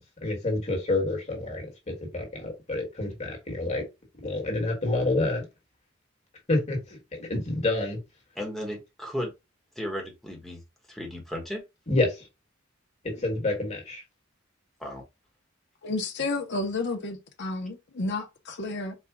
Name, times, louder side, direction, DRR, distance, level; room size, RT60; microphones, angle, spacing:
voice 1, 0.2-3.8 4.2-5.5 6.5-8.0 11.9-12.3 13.0-14.0, left 2 dB, 35° left, 1.6 m, -28 dB
voice 2, 8.4-9.3 9.8-10.6 10.9-11.6 14.8-15.0, equal, ahead, 1.2 m, -34 dB
voice 3, 15.8-18.9, left 3 dB, 60° left, 0.9 m, -31 dB
4.4 x 2.4 x 3.6 m
head